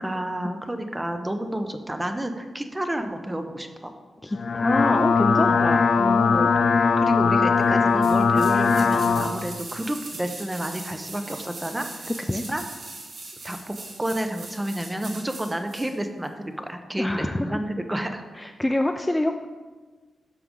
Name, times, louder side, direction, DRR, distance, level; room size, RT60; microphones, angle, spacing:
voice 1, 0.0-3.9 5.3-5.6 6.5-6.7 7.0-12.6 13.4-18.2, right 1 dB, 10° right, 6 dB, 0.8 m, -30 dB
voice 2, 4.2-6.5 12.2-12.4 17.0-17.6 18.3-19.5, left 1 dB, 10° left, 6 dB, 0.4 m, -26 dB
sound 1, 4.3-9.3, left 5 dB, 50° left, 0.6 m, -20 dB
sound 2, 8.0-15.9 16.2-16.3, right 3 dB, 55° right, 1.9 m, -40 dB
11.0 x 6.7 x 3.8 m, 1.4 s
wide cardioid pair, 115°, 0 cm